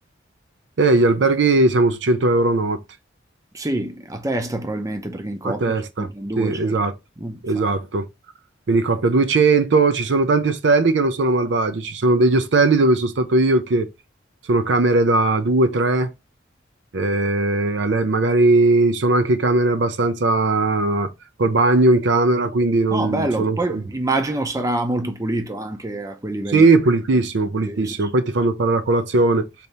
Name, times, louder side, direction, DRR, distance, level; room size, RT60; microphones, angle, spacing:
voice 1, 0.8-2.8 5.4-6.1 6.4-6.9 7.4-8.0 8.7-13.9 14.5-16.1 16.9-21.1 21.4-23.8 26.5-29.5, right 2 dB, 65° right, 0.5 m, -18 dB
voice 2, 3.5-6.8 7.2-7.7 22.9-26.6 27.7-28.1, right 2 dB, 15° right, 0.6 m, -26 dB
4.1 x 2.7 x 3.3 m
head